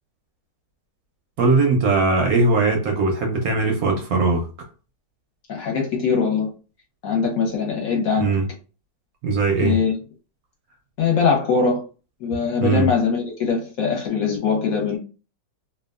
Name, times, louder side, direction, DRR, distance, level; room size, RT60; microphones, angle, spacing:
voice 1, 1.4-4.5 8.2-8.5 9.2-9.8 12.6-12.9, right 3 dB, 70° right, 0.9 m, -20 dB
voice 2, 5.5-6.5 7.0-8.3 9.6-10.0 11.0-11.8 12.2-15.0, left 5 dB, 60° left, 1.1 m, -22 dB
2.8 x 2.2 x 2.3 m
omnidirectional pair, 1.9 m